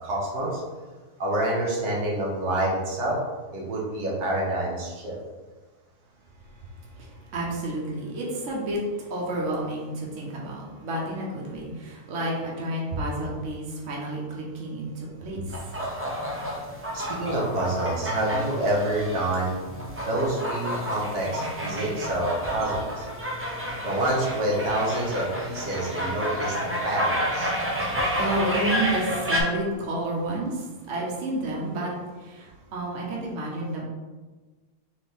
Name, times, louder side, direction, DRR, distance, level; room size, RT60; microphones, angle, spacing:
voice 1, 0.0-0.6 1.2-3.2 3.5-5.2 16.9-19.6 20.0-23.1 23.8-27.5, right 1 dB, 90° right, -4 dB, 1.7 m, -27 dB
voice 2, 6.5-15.5 27.7-31.9 32.2-33.8, right 1 dB, 55° right, -3 dB, 1.2 m, -31 dB
sound 1, 15.5-29.4, equal, 15° right, 0.4 m, -30 dB
4.2 x 3.4 x 3.4 m, 1.3 s
omnidirectional pair, 1.6 m